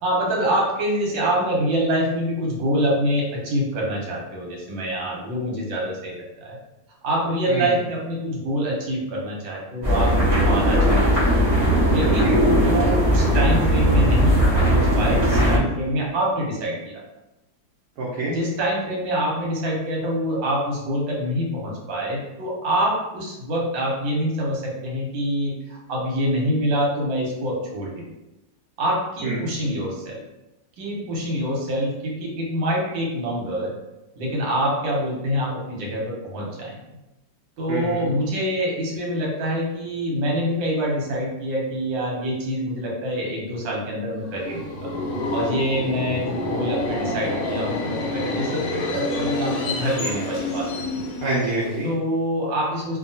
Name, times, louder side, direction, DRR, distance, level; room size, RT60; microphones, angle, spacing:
voice 1, 0.0-6.6 7.0-11.0 11.9-17.0 18.3-28.1 28.8-30.2 30.8-33.7 34.2-36.8 37.6-44.9 45.3-50.7 51.8-53.0, equal, 80° right, -3 dB, 1.5 m, -25 dB
sound 1, 9.8-15.6, equal, 25° right, 0.7 m, -18 dB
voice 2, 18.0-18.3 29.2-29.4 37.7-38.1 51.2-51.9, right 2 dB, 65° right, -6 dB, 1.0 m, -26 dB
Subway metro underground, 44.2-52.0, left 2 dB, 80° left, 0.8 m, -28 dB
2.7 x 2.7 x 2.6 m, 0.95 s
omnidirectional pair, 2.1 m